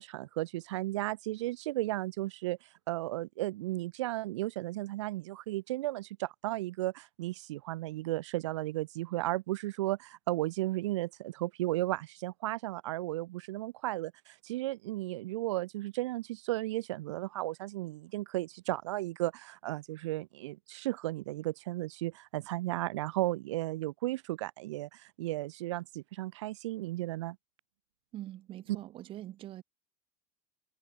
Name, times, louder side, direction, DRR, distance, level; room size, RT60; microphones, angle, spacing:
voice 1, 0.0-27.4, right 17 dB, 85° right, 1.1 m, -34 dB
voice 2, 28.1-29.6, right 13 dB, 35° right, 5.5 m, -43 dB
supercardioid pair, 150°, 15 cm